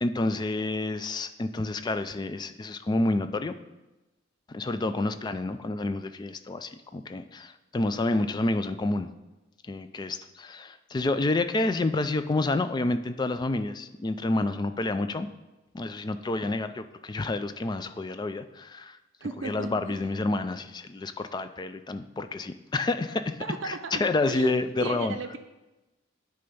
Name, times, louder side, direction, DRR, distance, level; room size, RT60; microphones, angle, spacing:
voice 1, 0.0-3.5 4.5-9.1 9.7-15.3 15.7-19.0 19.4-23.4 23.6-25.2, left 2 dB, 20° left, 10 dB, 0.3 m, -29 dB
voice 2, 19.2-19.7 23.4-25.4, right 3 dB, 65° right, 4 dB, 0.6 m, -35 dB
9.8 x 3.4 x 5.4 m, 1.0 s
head